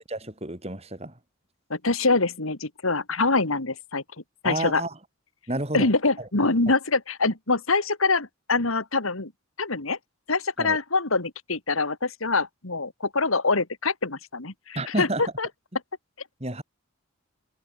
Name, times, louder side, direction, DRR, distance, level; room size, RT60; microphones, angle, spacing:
voice 1, 0.1-1.1 4.4-4.9 5.5-5.9 6.2-6.3 10.6-10.8 14.8-15.3 16.4-16.6, right 1 dB, 30° right, 3.8 m, -30 dB
voice 2, 1.7-4.0 4.4-4.8 5.7-9.3 9.6-10.0 10.3-15.1 15.4-15.5, left 3 dB, 85° left, 2.7 m, -25 dB
head